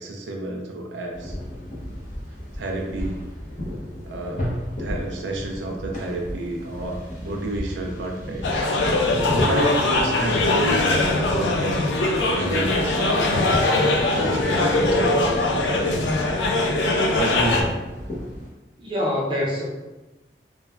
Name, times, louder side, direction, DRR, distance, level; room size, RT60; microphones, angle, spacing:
voice 1, 0.0-1.4 2.5-3.2 4.0-4.5 4.8-8.4 9.3-11.9 12.3-13.6 14.2-16.1 17.1-17.8, right 1 dB, 90° right, 1 dB, 0.4 m, -29 dB
sound 1, 1.1-18.5, left 1 dB, 45° left, 0.7 m, -33 dB
sound 2, 8.4-17.6, left 2 dB, 85° left, 0.4 m, -22 dB
voice 2, 18.8-19.7, left 1 dB, 30° right, -4 dB, 0.5 m, -25 dB
3.1 x 2.1 x 2.3 m, 1.1 s
head